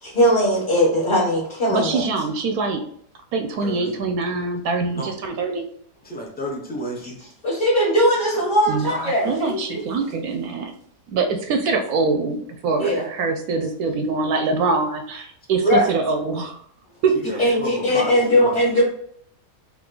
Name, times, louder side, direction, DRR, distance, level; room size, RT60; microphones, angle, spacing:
voice 1, 0.0-2.0 7.4-9.8 12.8-13.0 15.6-15.9 17.4-18.8, equal, 30° left, -6 dB, 1.4 m, -19 dB
voice 2, 1.7-2.8 3.3-5.7 8.7-10.7 11.1-16.6 17.0-17.1, right 4 dB, 70° right, 5 dB, 1.0 m, -24 dB
voice 3, 3.6-4.0 4.9-5.1 6.0-7.2 17.1-18.6, equal, 10° left, -2 dB, 0.6 m, -32 dB
3.7 x 2.9 x 3.7 m, 0.65 s
omnidirectional pair, 1.8 m